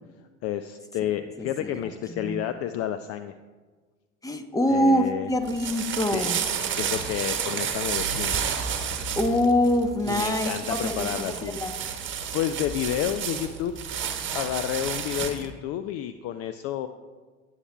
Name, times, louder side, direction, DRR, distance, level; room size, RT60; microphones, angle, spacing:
voice 1, 0.4-3.4 4.7-5.3 5.9-6.3 6.7-8.4 10.1-11.6 12.3-13.8 14.3-16.9, left 11 dB, 40° left, 10 dB, 0.4 m, -30 dB
voice 2, 1.4-1.9 2.2-2.4 4.2-6.4 9.1-11.1 11.4-11.7, left 1 dB, 10° left, 7 dB, 1.0 m, -24 dB
sound 1, 5.3-15.5, right 7 dB, 30° right, 1.3 m, -31 dB
17.5 x 7.4 x 2.3 m, 1.4 s
hypercardioid pair, 75°, 37 cm